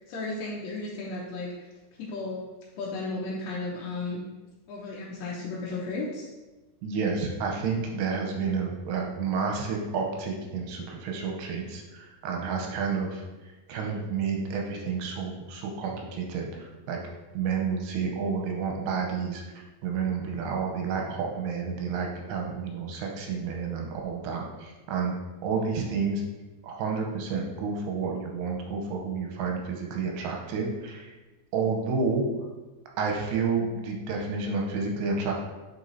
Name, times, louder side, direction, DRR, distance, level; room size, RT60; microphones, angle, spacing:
voice 1, 0.1-1.5 2.0-2.4 2.8-4.2 4.7-6.3 25.6-25.8, left 3 dB, 80° left, -5 dB, 2.1 m, -34 dB
voice 2, 6.8-17.0 17.3-25.1 25.4-26.2 26.6-31.1 31.5-32.2 33.0-35.3, right 5 dB, 90° right, 1 dB, 2.9 m, -30 dB
8.1 x 4.5 x 2.7 m, 1.1 s
omnidirectional pair, 4.9 m